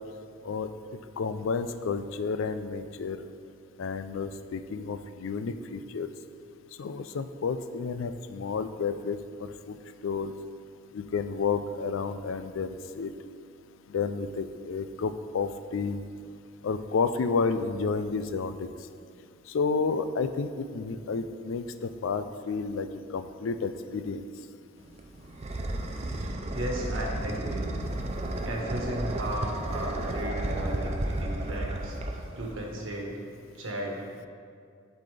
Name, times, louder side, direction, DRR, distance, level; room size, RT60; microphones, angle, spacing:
voice 1, 1.2-3.2 3.8-6.1 6.8-9.8 10.0-10.3 10.9-13.1 13.9-16.0 16.6-18.7 19.5-22.9 23.1-24.2, left 5 dB, 75° left, 10 dB, 0.4 m, -31 dB
sound 1, 24.8-32.8, right 1 dB, 30° right, 0.5 m, -33 dB
voice 2, 26.2-27.7 28.4-33.1 33.5-34.3, right 1 dB, 75° right, -1 dB, 1.3 m, -35 dB
12.0 x 4.1 x 3.3 m, 2.3 s
head